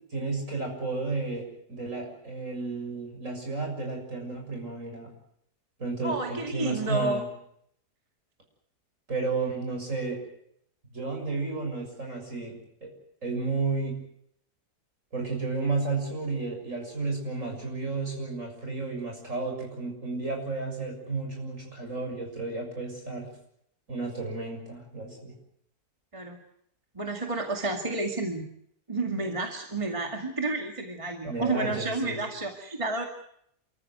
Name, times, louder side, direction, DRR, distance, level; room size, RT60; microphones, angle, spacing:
voice 1, 0.1-5.1 5.8-7.3 9.1-10.2 10.9-12.9 13.2-14.0 15.1-23.3 23.9-25.3 31.3-32.3, right 3 dB, 50° right, 2 dB, 7.1 m, -32 dB
voice 2, 6.0-7.2 26.1-26.4 26.9-28.5 28.9-33.0, right 2 dB, 20° right, 3 dB, 2.1 m, -30 dB
28.0 x 14.0 x 9.5 m, 0.72 s
omnidirectional pair, 1.7 m